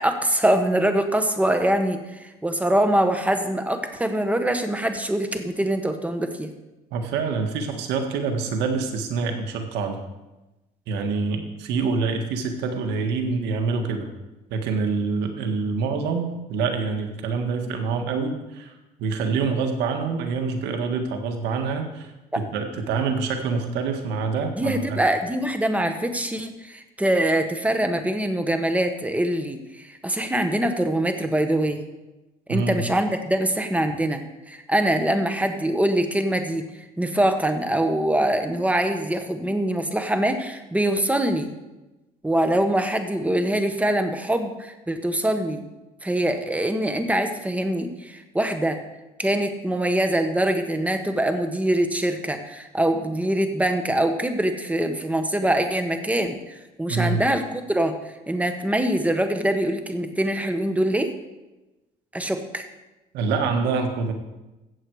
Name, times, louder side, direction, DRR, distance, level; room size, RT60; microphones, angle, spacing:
voice 1, 0.0-6.5 24.6-31.8 32.5-36.6 37.0-41.5 42.2-45.6 46.0-48.8 49.2-57.9 58.3-61.1 62.1-62.6, right 1 dB, 10° right, 7 dB, 1.3 m, -23 dB
voice 2, 6.9-10.0 10.9-14.1 14.5-18.7 19.0-22.1 22.5-25.0 32.5-32.8 56.9-57.2 63.1-64.1, right 4 dB, 90° right, 4 dB, 1.8 m, -26 dB
15.0 x 7.8 x 4.9 m, 1.0 s
cardioid pair, 110°, 17 cm